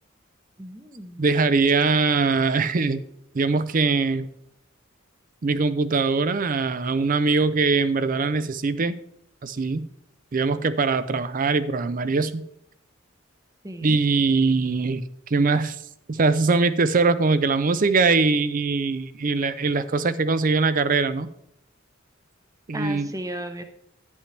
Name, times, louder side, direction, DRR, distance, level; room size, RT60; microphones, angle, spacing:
voice 1, 0.6-1.3 13.6-14.0 22.7-23.6, right 1 dB, 15° right, 8 dB, 0.8 m, -35 dB
voice 2, 1.2-3.0 3.3-4.3 5.4-9.0 9.4-9.9 10.3-12.4 13.8-15.8 16.1-21.3 22.7-23.1, right 4 dB, 40° right, 14 dB, 0.5 m, -22 dB
10.5 x 8.5 x 3.3 m, 0.74 s
head